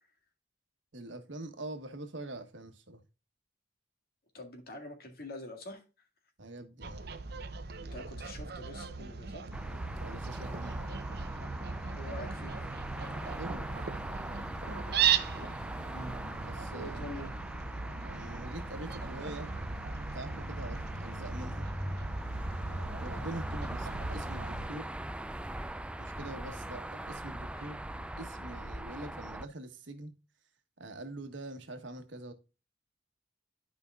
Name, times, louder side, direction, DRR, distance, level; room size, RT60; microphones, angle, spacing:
voice 1, 0.9-3.0 6.4-7.1 10.0-11.0 13.4-13.7 16.5-17.1 18.1-19.5 20.1-21.7 23.0-24.9 26.0-30.1 30.8-32.3, right 2 dB, 75° right, 1.3 m, -44 dB
voice 2, 4.3-5.8 7.9-9.5 12.0-12.6 15.9-16.2 16.7-17.3 27.5-27.7, left 1 dB, 50° left, 1.9 m, -45 dB
Fowl, 6.8-24.7, right 6 dB, 55° right, 0.7 m, -37 dB
sound 1, 9.5-29.4, right 1 dB, 5° right, 0.4 m, -41 dB
11.5 x 5.2 x 2.3 m
head